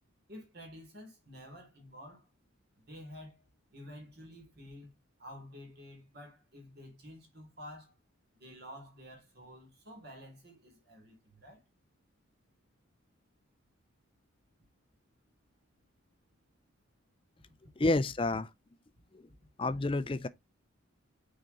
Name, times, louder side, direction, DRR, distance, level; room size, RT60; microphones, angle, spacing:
voice 1, 0.3-2.3 2.8-3.4 3.7-4.9 5.2-8.0 8.3-11.6, equal, 50° right, 3.3 m, -50 dB
voice 2, 17.8-18.5 19.1-19.3 19.6-20.3, left 2 dB, 25° left, 0.4 m, -29 dB
6.2 x 5.0 x 4.0 m
head